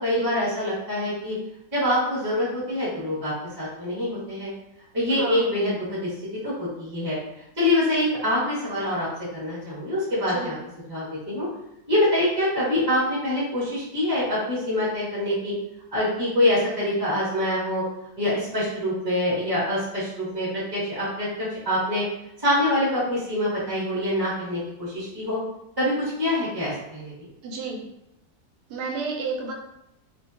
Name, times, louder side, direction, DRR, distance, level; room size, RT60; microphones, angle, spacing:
voice 1, 0.0-1.3 1.7-4.5 4.9-7.2 7.6-10.5 10.9-11.4 11.9-15.5 15.9-17.8 18.2-21.3 21.6-22.0 22.4-25.4 25.8-27.3, left 1 dB, 20° right, -9 dB, 0.8 m, -25 dB
voice 2, 5.1-5.5 10.3-10.5 27.4-27.9 28.7-29.5, right 4 dB, 85° right, 1 dB, 1.1 m, -31 dB
2.6 x 2.2 x 2.4 m, 0.86 s
omnidirectional pair, 1.6 m